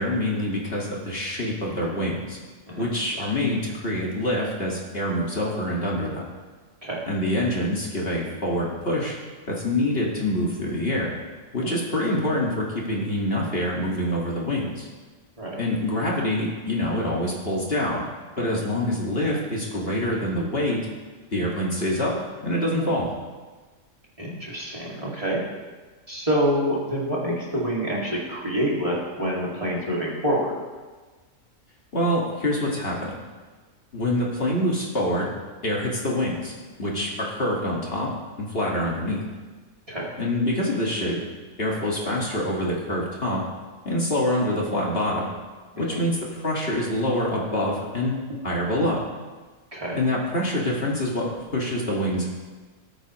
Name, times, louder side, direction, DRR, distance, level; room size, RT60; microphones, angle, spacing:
voice 1, 0.0-2.4 2.8-6.3 7.1-9.2 9.5-11.2 11.5-14.9 15.6-18.0 18.4-20.8 21.3-22.1 22.4-23.1 31.9-33.1 33.9-35.3 35.6-36.5 36.8-38.1 38.4-39.2 40.2-41.2 41.6-43.4 43.9-45.3 45.8-48.2 48.4-49.0 49.9-52.3, left 1 dB, 45° left, -4 dB, 2.2 m, -25 dB
voice 2, 24.2-25.4 26.1-30.5 37.1-37.2 39.9-40.1 45.8-46.0 49.7-50.0, equal, 25° right, -5 dB, 2.5 m, -27 dB
19.0 x 9.0 x 3.1 m, 1.3 s
omnidirectional pair, 1.4 m